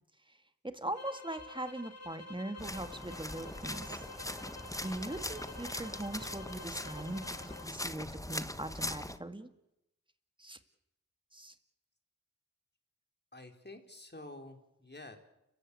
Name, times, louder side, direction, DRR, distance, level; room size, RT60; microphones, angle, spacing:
voice 1, 0.6-4.0 4.3-4.4 4.7-9.5 10.4-10.6 11.3-11.5, right 1 dB, 15° right, 8 dB, 2.4 m, -41 dB
sound 1, 0.9-7.7, left 3 dB, 50° left, 2.6 m, -49 dB
sound 2, 2.6-9.2, left 1 dB, 10° left, 1.2 m, -41 dB
voice 2, 13.3-15.2, left 2 dB, 30° left, 4 dB, 4.2 m, -49 dB
30.0 x 15.0 x 8.8 m, 0.89 s
cardioid pair, 45°, 34 cm